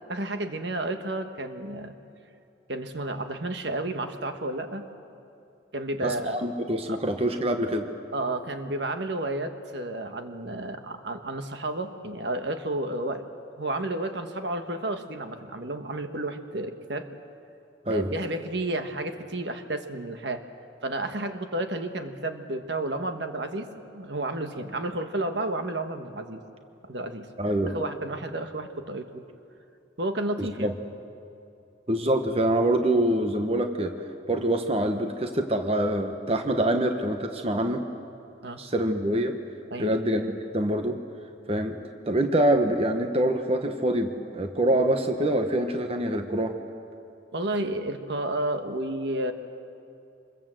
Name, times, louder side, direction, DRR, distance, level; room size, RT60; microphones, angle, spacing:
voice 1, 0.1-2.0 2.7-4.9 5.7-6.4 6.9-7.0 8.1-13.3 13.6-17.1 17.9-20.4 20.8-26.4 26.8-29.2 30.0-30.7 38.4-38.6 39.7-39.9 47.3-49.3, right 2 dB, 65° right, 7 dB, 1.3 m, -31 dB
voice 2, 6.0-7.9 17.9-18.1 27.4-27.8 30.4-30.7 31.9-33.9 34.3-37.8 38.6-39.4 39.8-41.0 41.5-46.6, right 1 dB, 30° right, 6 dB, 1.1 m, -25 dB
26.0 x 21.5 x 7.7 m, 2.6 s
head